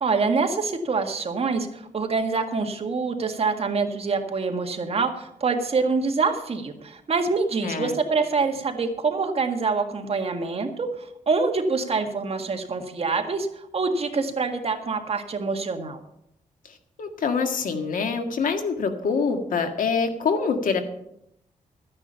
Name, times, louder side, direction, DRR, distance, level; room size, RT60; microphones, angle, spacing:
voice 1, 0.0-16.0, right 4 dB, 45° right, 4 dB, 1.7 m, -25 dB
voice 2, 7.6-7.9 16.7-20.8, left 5 dB, 75° left, 6 dB, 1.7 m, -25 dB
13.5 x 9.8 x 5.7 m, 0.78 s
cardioid pair, 105°, 14 cm